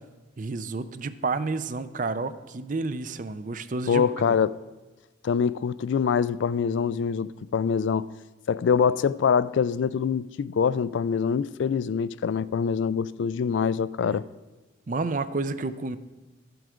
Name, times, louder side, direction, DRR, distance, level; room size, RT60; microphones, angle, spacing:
voice 1, 0.4-4.1 14.0-14.2 14.9-16.0, right 3 dB, 40° right, 0.5 m, -30 dB
voice 2, 3.9-4.6 5.2-8.1 8.5-14.2, left 6 dB, 70° left, 0.3 m, -24 dB
11.5 x 7.8 x 5.0 m
head